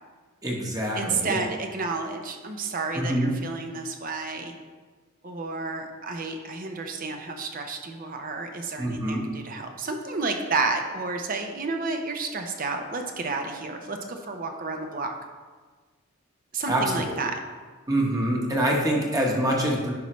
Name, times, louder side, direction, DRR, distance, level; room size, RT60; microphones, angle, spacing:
voice 1, 0.4-1.4 2.9-3.3 8.8-9.2 16.7-17.2 17.9-19.9, right 1 dB, 15° right, -2 dB, 1.1 m, -25 dB
voice 2, 1.0-4.5 5.2-15.1 16.5-17.4, right 3 dB, 40° right, 4 dB, 0.6 m, -31 dB
10.5 x 5.5 x 3.1 m, 1.4 s
head